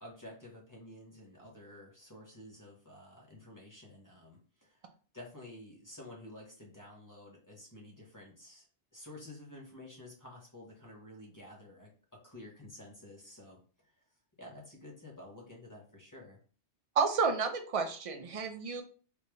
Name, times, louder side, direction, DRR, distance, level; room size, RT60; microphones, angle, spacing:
voice 1, 0.0-4.9 5.1-8.7 8.9-11.9 12.2-13.9 14.4-16.4, left 1 dB, 15° left, -2 dB, 1.1 m, -51 dB
voice 2, 17.0-18.8, right 5 dB, 45° right, 6 dB, 0.5 m, -31 dB
3.5 x 2.8 x 3.1 m, 0.40 s
omnidirectional pair, 1.2 m